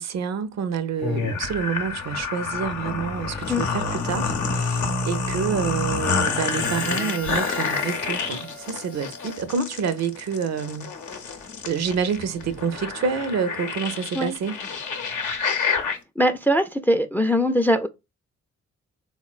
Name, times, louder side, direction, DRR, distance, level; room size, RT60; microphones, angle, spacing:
voice 1, 0.0-10.9 11.7-14.6, right 6 dB, 60° right, 0.5 m, -28 dB
sound 1, 1.0-16.0, left 4 dB, 80° left, 0.7 m, -28 dB
Harmonica, 6.3-10.1, left 4 dB, 50° left, 0.7 m, -39 dB
voice 2, 16.2-17.9, equal, 5° left, 0.3 m, -21 dB
3.7 x 2.1 x 2.3 m
supercardioid pair, 45°, 30 cm